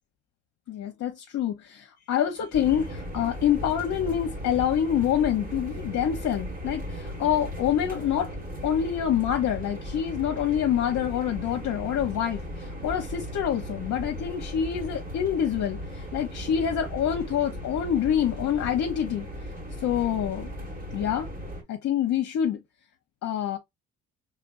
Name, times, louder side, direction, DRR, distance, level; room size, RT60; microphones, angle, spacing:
voice 1, 0.7-8.3 8.6-19.2 19.8-20.5 20.9-21.3 21.7-22.6 23.2-23.6, left 9 dB, 65° left, 0.8 m, -26 dB
sound 1, 2.5-21.6, equal, 30° right, 1.6 m, -37 dB
5.0 x 3.2 x 2.5 m
cardioid pair, 90°, 30 cm